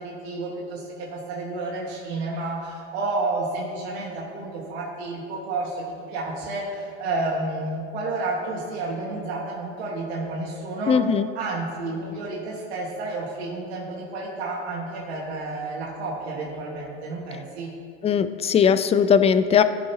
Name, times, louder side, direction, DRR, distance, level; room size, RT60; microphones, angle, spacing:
voice 1, 0.0-17.7, right 2 dB, 85° right, -3 dB, 1.7 m, -31 dB
voice 2, 10.9-11.3 18.0-19.6, left 7 dB, 20° left, 12 dB, 0.4 m, -19 dB
14.5 x 6.5 x 2.8 m, 2.3 s
supercardioid pair, 105°, 32 cm